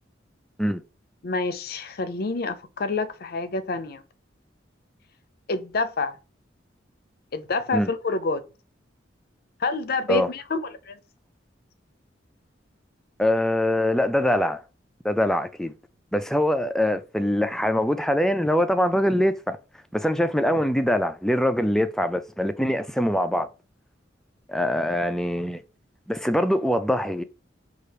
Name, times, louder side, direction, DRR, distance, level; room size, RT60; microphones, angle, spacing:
voice 1, 1.2-4.0 5.5-6.2 7.3-8.4 9.6-11.0, left 3 dB, 55° left, 0.5 m, -27 dB
voice 2, 13.2-14.6 15.0-15.7 16.1-19.6 19.9-23.5 24.5-25.6 26.1-27.2, left 1 dB, 5° left, 0.3 m, -23 dB
5.7 x 2.4 x 3.3 m
head